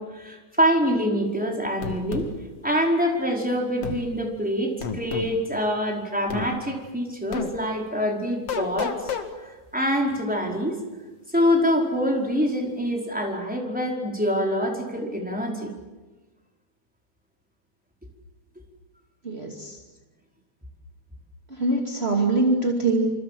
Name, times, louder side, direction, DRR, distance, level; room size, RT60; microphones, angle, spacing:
voice 1, 0.0-2.3 2.6-10.8 11.3-15.7, equal, ahead, 0 dB, 4.5 m, -25 dB
sound 1, 1.8-2.3 3.8-4.0 4.8-5.3 6.3-6.5 7.3-7.5 8.5-9.3, left 7 dB, 45° left, 2.4 m, -30 dB
voice 2, 19.2-19.8 21.5-23.1, right 2 dB, 20° right, 1 dB, 1.8 m, -23 dB
28.5 x 27.0 x 7.8 m, 1.2 s
omnidirectional pair, 4.7 m